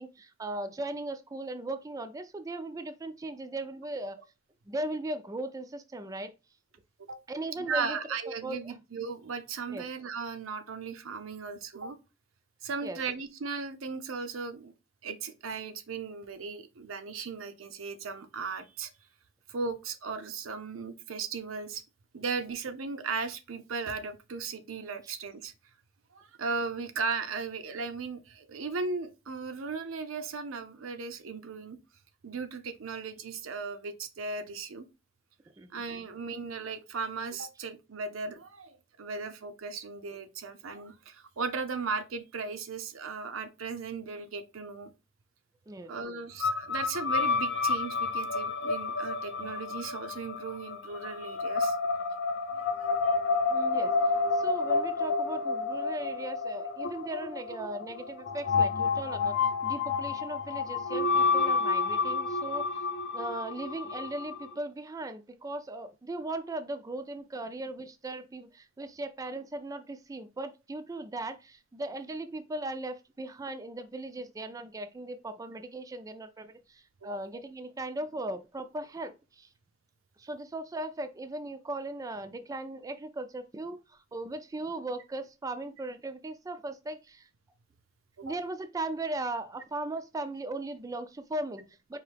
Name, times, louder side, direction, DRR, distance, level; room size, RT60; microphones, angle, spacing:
voice 1, 0.0-4.2 4.7-6.3 7.3-8.0 8.4-8.7 9.7-9.9 12.8-13.0 35.6-35.7 45.7-45.9 53.5-62.8 63.1-79.5 80.2-87.3 88.2-92.0, right 2 dB, 15° right, 0.3 m, -38 dB
voice 2, 7.6-12.0 12.6-14.7 15.0-18.9 19.5-21.8 22.1-25.5 26.1-31.8 32.2-34.9 35.7-44.9 45.9-51.8 52.5-52.9 77.0-77.2 88.2-88.3, right 4 dB, 90° right, 0.6 m, -37 dB
sound 1, 46.4-64.5, left 4 dB, 60° left, 0.5 m, -30 dB
4.6 x 2.7 x 3.3 m
head